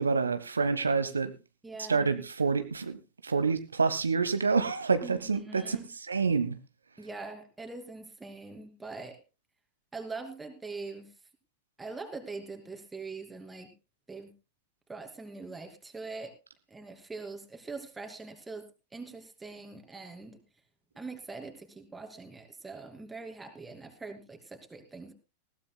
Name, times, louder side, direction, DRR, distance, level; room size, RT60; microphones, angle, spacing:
voice 1, 0.0-1.3 1.9-3.0 3.2-6.5, right 4 dB, 75° right, 10 dB, 1.0 m, -27 dB
voice 2, 1.6-2.2 5.0-5.9 7.0-9.2 9.9-11.1 11.8-13.7 14.1-14.3 14.9-16.3 16.7-20.4 21.0-25.1, right 3 dB, 10° right, 6 dB, 2.7 m, -43 dB
20.0 x 15.5 x 2.2 m, 0.29 s
figure-of-eight pair, 90°, 0 cm